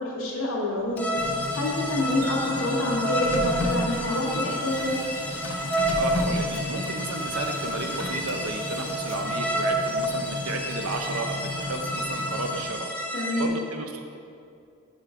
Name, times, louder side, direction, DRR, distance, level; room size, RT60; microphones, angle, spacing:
voice 1, 0.0-5.0 13.1-13.5, left 1 dB, 90° left, -2 dB, 1.1 m, -27 dB
Printer, 0.8-12.9, left 1 dB, 65° left, 0.7 m, -34 dB
sound 1, 1.0-13.5, equal, 5° left, 0.4 m, -30 dB
Wind chime, 2.2-6.5, left 1 dB, 40° right, 0.6 m, -43 dB
voice 2, 5.9-12.9 13.4-14.0, right 2 dB, 80° right, 4 dB, 0.6 m, -33 dB
5.1 x 4.5 x 4.8 m, 2.4 s
head